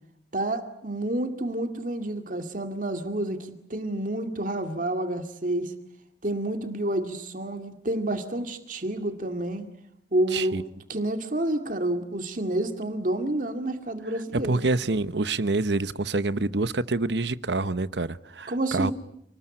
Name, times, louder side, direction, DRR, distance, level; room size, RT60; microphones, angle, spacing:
voice 1, 0.3-5.7 6.2-9.7 10.1-14.6 18.5-18.9, right 1 dB, 45° right, 6 dB, 2.3 m, -29 dB
voice 2, 10.3-10.6 14.3-18.9, right 3 dB, 70° right, 14 dB, 1.1 m, -27 dB
29.0 x 20.5 x 10.0 m, 0.74 s
head